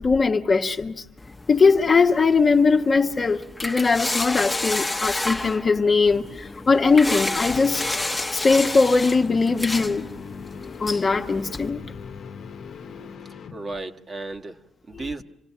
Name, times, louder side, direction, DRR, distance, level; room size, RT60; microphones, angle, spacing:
voice 1, 0.0-1.0 1.5-7.9 8.3-10.1 10.8-11.8 15.0-15.1, left 4 dB, 35° left, 1.1 m, -20 dB
sound 1, 1.2-11.7, left 2 dB, 15° left, 1.1 m, -31 dB
sound 2, 6.2-13.9, left 6 dB, 65° left, 1.0 m, -41 dB
voice 2, 12.8-14.6 14.9-15.2, right 2 dB, 35° right, 1.4 m, -35 dB
27.5 x 17.5 x 7.3 m
cardioid pair, 90°, 0 cm